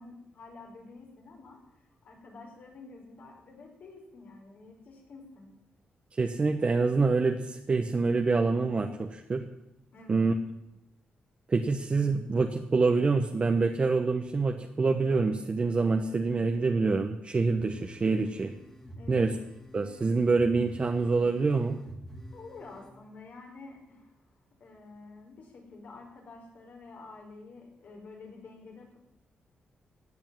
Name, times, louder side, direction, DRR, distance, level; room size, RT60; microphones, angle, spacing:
voice 1, 0.0-1.6 2.0-5.5 9.9-10.2 18.9-19.3 22.3-24.2 24.6-29.0, left 3 dB, 65° left, 1 dB, 5.0 m, -49 dB
voice 2, 6.2-9.4 10.1-10.3 11.5-18.5 19.1-19.3 19.7-21.8, right 4 dB, 35° right, 4 dB, 1.1 m, -26 dB
sound 1, 17.6-22.9, right 1 dB, 15° left, 2.5 m, -49 dB
15.5 x 8.4 x 9.1 m, 0.86 s
cardioid pair, 105°, 3 cm